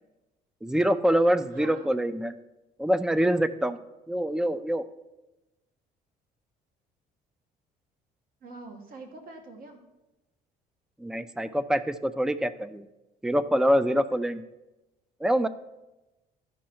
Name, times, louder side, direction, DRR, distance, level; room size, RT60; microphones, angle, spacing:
voice 1, 0.6-2.3 2.8-3.8 4.1-4.8 11.0-12.9 13.2-14.4 15.2-15.5, equal, 5° right, 13 dB, 0.4 m, -25 dB
voice 2, 1.5-1.9 8.4-9.8, right 3 dB, 60° right, 5 dB, 1.4 m, -44 dB
12.5 x 5.4 x 4.4 m, 1.0 s
cardioid pair, 110°, 17 cm